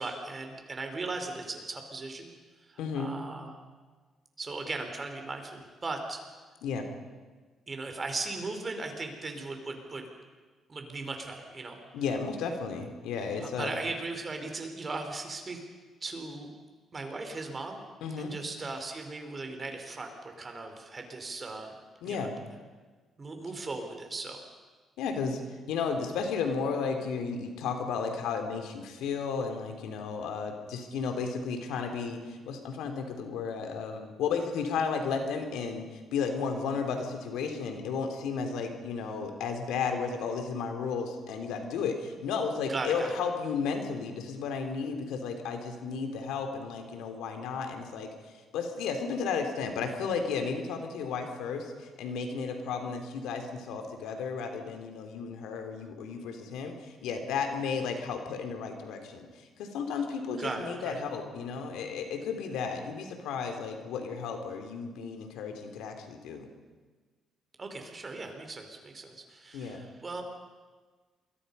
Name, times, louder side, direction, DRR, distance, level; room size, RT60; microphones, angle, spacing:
voice 1, 0.0-2.3 2.7-3.6 4.4-6.2 7.7-10.1 10.7-11.8 13.4-15.6 16.0-16.5 16.9-17.8 18.2-21.7 22.0-22.3 23.2-24.4 42.7-43.1 60.4-61.0 67.6-70.2, right 3 dB, 30° right, 5 dB, 4.5 m, -38 dB
voice 2, 2.8-3.1 6.6-6.8 11.9-13.7 18.0-18.3 22.0-22.3 25.0-25.4 25.7-35.8 36.1-48.1 48.5-66.5 69.5-69.8, left 5 dB, 90° left, 5 dB, 3.2 m, -33 dB
28.0 x 22.5 x 5.6 m, 1.4 s
cardioid pair, 90°, 0 cm